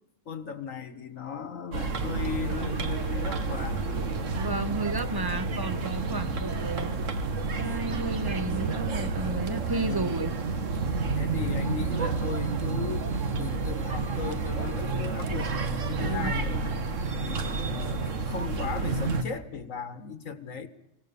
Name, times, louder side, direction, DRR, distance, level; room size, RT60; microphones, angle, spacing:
voice 1, 0.3-3.8 6.0-6.5 9.7-10.2 11.1-13.1 13.4-15.5 15.9-16.7 17.2-20.7, left 7 dB, 85° left, 1.9 m, -37 dB
sound 1, 1.7-19.2, right 4 dB, 75° right, 1.8 m, -30 dB
sound 2, 2.5-5.4, left 5 dB, 55° left, 1.1 m, -47 dB
voice 2, 4.3-7.0 7.6-10.3 16.0-16.3, right 2 dB, 20° right, 1.0 m, -32 dB
24.5 x 17.5 x 7.0 m
omnidirectional pair, 1.3 m